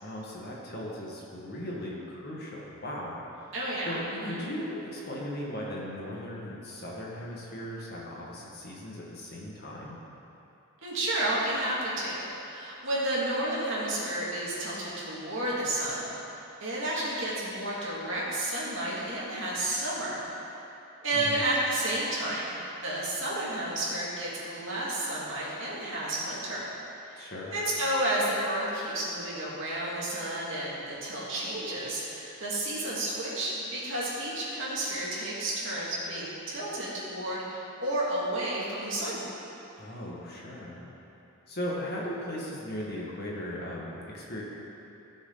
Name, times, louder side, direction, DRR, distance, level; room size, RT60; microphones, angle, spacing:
voice 1, 0.0-3.5 3.8-10.0 21.1-21.5 27.2-27.5 39.8-40.8 41.5-44.4, left 1 dB, 45° left, -4 dB, 1.9 m, -38 dB
voice 2, 3.5-4.5 10.8-16.1 16.6-20.2 21.0-26.7 27.1-27.2 27.5-39.2, right 1 dB, 60° right, -7 dB, 2.6 m, -31 dB
16.0 x 6.8 x 4.1 m, 2.9 s
head